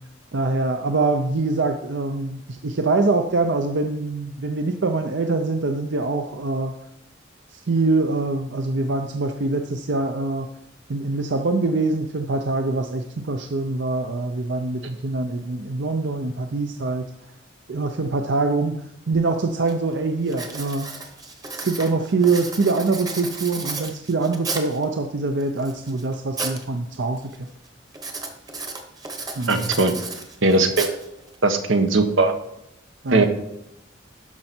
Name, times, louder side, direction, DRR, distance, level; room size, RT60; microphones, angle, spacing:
voice 1, 0.3-6.7 7.7-10.5 10.9-17.0 17.7-20.9 21.6-27.5 29.4-29.7 33.0-33.3, right 3 dB, 65° right, 5 dB, 0.6 m, -24 dB
Writing, 19.1-19.2 19.7-19.9 20.3-24.8 25.4-26.6 26.9-27.4 27.9-31.4, right 3 dB, 20° right, 1.0 m, -33 dB
voice 2, 29.5-29.9 30.4-30.9 31.4-32.3 33.1-33.3, right 3 dB, 85° right, 7 dB, 1.1 m, -18 dB
12.5 x 5.4 x 4.4 m, 0.80 s
head